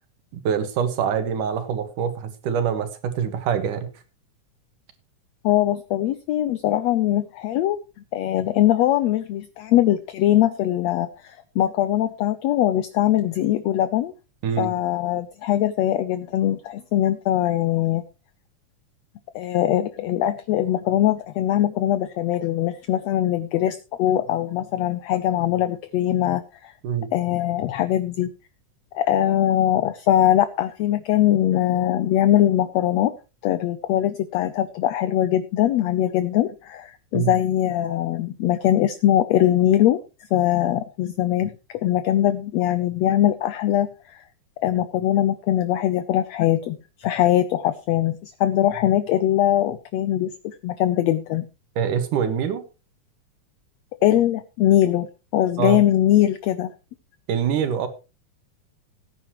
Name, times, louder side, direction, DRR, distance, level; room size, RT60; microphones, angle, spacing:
voice 1, 0.3-3.9 14.4-14.7 26.8-27.1 37.1-37.3 51.8-52.6 55.6-55.8 57.3-57.9, right 7 dB, 80° right, 9 dB, 3.1 m, -24 dB
voice 2, 5.4-7.8 8.1-14.1 14.6-18.0 19.4-26.7 27.1-28.3 28.9-33.1 33.4-40.0 40.3-44.2 44.6-51.5 54.0-56.7, left 12 dB, 75° left, 12 dB, 1.7 m, -21 dB
18.0 x 9.7 x 3.1 m, 0.29 s
omnidirectional pair, 3.6 m